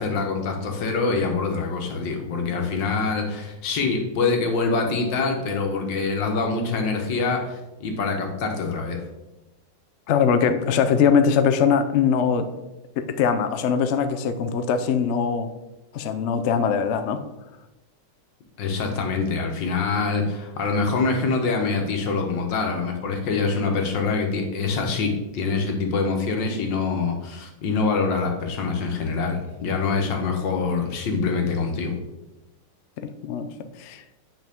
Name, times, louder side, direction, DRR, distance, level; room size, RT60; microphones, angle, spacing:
voice 1, 0.0-9.0 18.6-31.9, left 4 dB, 90° left, 3 dB, 1.8 m, -25 dB
voice 2, 10.1-12.5 13.0-15.5 15.9-17.2 33.0-33.5 33.8-34.0, left 6 dB, 70° left, 8 dB, 0.6 m, -21 dB
9.1 x 5.7 x 3.5 m, 1.0 s
omnidirectional pair, 1.9 m